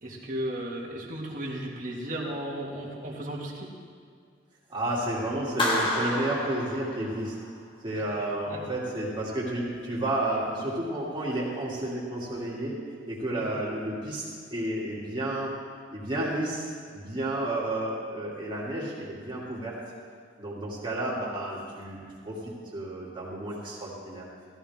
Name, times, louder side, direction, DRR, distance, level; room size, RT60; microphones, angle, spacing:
voice 1, 0.0-3.7 8.5-8.6, right 1 dB, 40° right, -3 dB, 2.2 m, -35 dB
voice 2, 4.7-7.3 7.8-12.8 13.1-15.5 15.9-19.7 20.4-22.4 22.7-24.2, right 1 dB, 25° right, -6 dB, 2.8 m, -31 dB
Clapping, 5.6-7.5, left 1 dB, 25° left, 1.9 m, -29 dB
15.5 x 14.5 x 3.7 m, 2.1 s
head